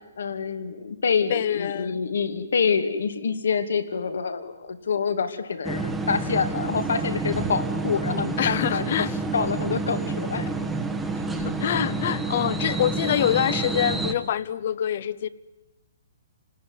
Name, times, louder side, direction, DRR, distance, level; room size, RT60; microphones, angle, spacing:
voice 1, 0.2-9.1 9.3-10.5, left 6 dB, 75° left, 10 dB, 2.6 m, -26 dB
voice 2, 1.3-2.0 8.4-9.2 11.3-15.3, left 10 dB, 40° left, 18 dB, 0.9 m, -25 dB
sound 1, 5.6-14.1, right 3 dB, 5° right, 1.1 m, -28 dB
29.5 x 19.5 x 9.8 m, 1.1 s
hypercardioid pair, 175°, 0 cm